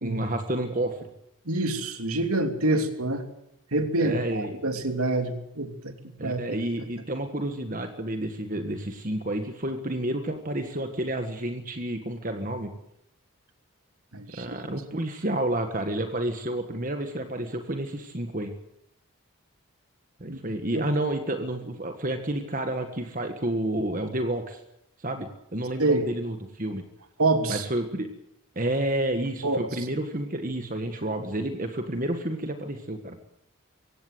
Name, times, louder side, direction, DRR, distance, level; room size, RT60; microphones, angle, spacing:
voice 1, 0.0-1.1 4.0-4.6 6.2-12.7 14.4-18.5 20.2-24.6 25.0-26.8 27.5-28.1 28.5-33.2, right 1 dB, 35° right, 6 dB, 1.6 m, -30 dB
voice 2, 1.5-3.2 3.7-5.9 6.2-6.4 14.1-14.6 20.2-20.4 20.8-20.9 25.8-26.1 27.2-27.6 29.4-29.7, right 2 dB, 80° right, 6 dB, 2.9 m, -26 dB
24.5 x 16.5 x 8.0 m, 0.78 s
head